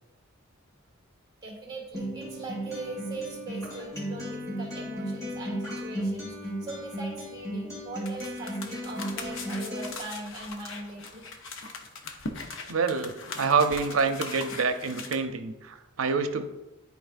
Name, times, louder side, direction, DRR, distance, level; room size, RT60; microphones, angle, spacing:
voice 1, 1.4-11.2, right 2 dB, 20° right, -2 dB, 1.9 m, -40 dB
Acoustic guitar, 1.9-9.9, equal, 15° left, 2.5 m, -35 dB
sound 1, 8.1-15.1, left 3 dB, 65° left, 0.8 m, -40 dB
voice 2, 12.7-16.5, right 5 dB, 85° right, 8 dB, 0.6 m, -27 dB
10.5 x 4.6 x 2.5 m, 1.0 s
head